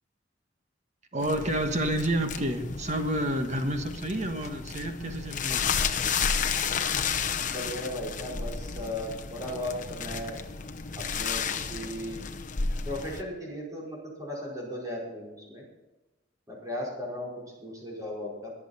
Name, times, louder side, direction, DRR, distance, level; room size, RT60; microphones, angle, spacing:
voice 1, 1.1-5.7, right 1 dB, 40° right, 5 dB, 1.4 m, -29 dB
sound 1, 1.2-13.2, left 6 dB, 40° left, 0.8 m, -32 dB
voice 2, 7.3-10.4 11.0-12.3 12.8-15.6 16.5-18.5, left 1 dB, 20° right, -4 dB, 4.6 m, -36 dB
22.5 x 7.7 x 4.2 m, 1.0 s
head